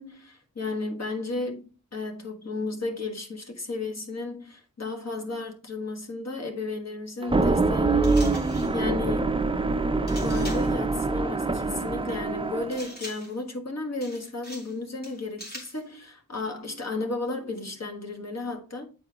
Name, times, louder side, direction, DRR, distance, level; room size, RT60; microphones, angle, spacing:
voice 1, 0.0-9.4 10.1-18.9, left 3 dB, 50° left, 1.5 m, -34 dB
sound 1, 7.2-12.9, right 3 dB, 15° right, 0.4 m, -25 dB
sound 2, 8.0-8.8 10.1-10.8 12.7-13.4 14.0-14.8 15.0-15.8, equal, 30° left, 2.2 m, -42 dB
8.3 x 4.3 x 3.5 m
wide cardioid pair, 100°, 34 cm